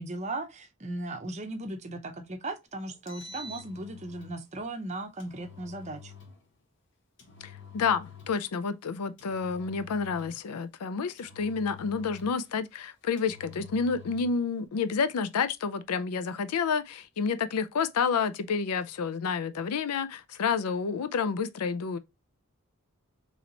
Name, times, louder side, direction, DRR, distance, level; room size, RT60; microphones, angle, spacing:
voice 1, 0.0-6.1, right 2 dB, 30° right, 0.6 m, -37 dB
Engine, 2.9-4.4 5.2-6.4 7.2-8.5 9.2-10.5 11.2-12.5 13.2-14.4, left 4 dB, 55° left, 0.9 m, -48 dB
voice 2, 7.4-22.0, left 5 dB, 90° left, 0.4 m, -29 dB
3.1 x 2.8 x 3.9 m
head